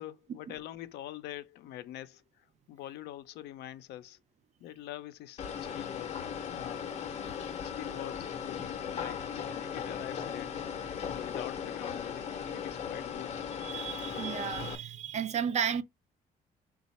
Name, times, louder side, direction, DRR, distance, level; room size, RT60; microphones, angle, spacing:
voice 1, 0.0-4.2 4.6-6.9 7.6-10.6 11.0-13.4, left 13 dB, 75° left, 0.5 m, -45 dB
sound 1, 5.4-14.7, left 7 dB, 40° left, 0.7 m, -37 dB
voice 2, 13.6-15.8, right 8 dB, 45° right, 0.5 m, -33 dB
4.0 x 2.3 x 4.1 m
cardioid pair, 110°, 17 cm